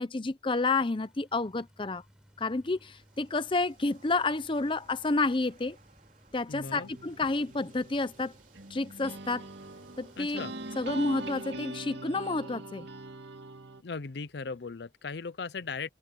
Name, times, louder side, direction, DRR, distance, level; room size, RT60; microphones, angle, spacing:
voice 1, 0.0-2.0 2.4-5.8 6.3-8.3 8.7-9.5 10.0-10.4 10.8-12.9, left 3 dB, 30° left, 0.6 m, -30 dB
sound 1, 0.9-10.9, equal, 5° right, 7.7 m, -61 dB
sound 2, 2.0-11.5, right 3 dB, 45° right, 3.8 m, -60 dB
voice 2, 6.5-6.9 10.2-10.5 13.8-15.9, left 4 dB, 65° left, 0.6 m, -38 dB
sound 3, 6.6-13.8, right 2 dB, 70° right, 2.3 m, -42 dB
head